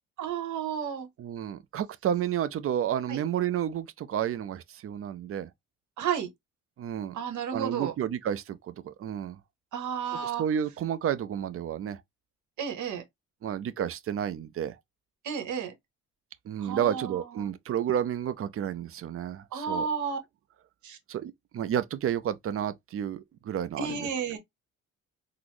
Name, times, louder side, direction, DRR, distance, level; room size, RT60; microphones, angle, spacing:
voice 1, 0.2-1.1 3.1-3.2 6.0-6.3 7.1-7.9 9.7-10.4 12.6-13.0 15.2-15.7 16.6-17.5 19.5-20.2 20.8-21.0 23.8-24.4, right 7 dB, 75° right, 1.1 m, -32 dB
voice 2, 1.2-5.5 6.8-7.2 7.5-9.4 10.2-12.0 13.4-14.7 16.5-19.8 21.1-24.1, right 9 dB, 45° right, 0.5 m, -31 dB
3.9 x 2.0 x 3.1 m
cardioid pair, 90°, 30 cm